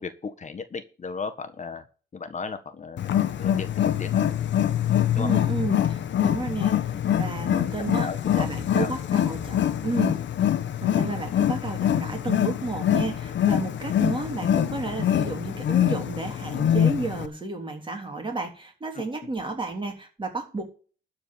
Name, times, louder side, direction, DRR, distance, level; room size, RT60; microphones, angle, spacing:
voice 1, 0.0-1.8 2.1-3.1 3.4-4.2 5.1-5.3 6.9-7.1 8.0-8.5 8.7-8.9 18.9-19.1, left 5 dB, 35° left, 9 dB, 1.6 m, -35 dB
Wild animals, 3.0-17.3, left 10 dB, 65° left, 1.4 m, -24 dB
voice 2, 5.1-10.2 10.8-20.6, right 3 dB, 25° right, 3 dB, 3.4 m, -32 dB
12.5 x 4.9 x 8.6 m, 0.38 s
cardioid pair, 90°, 20 cm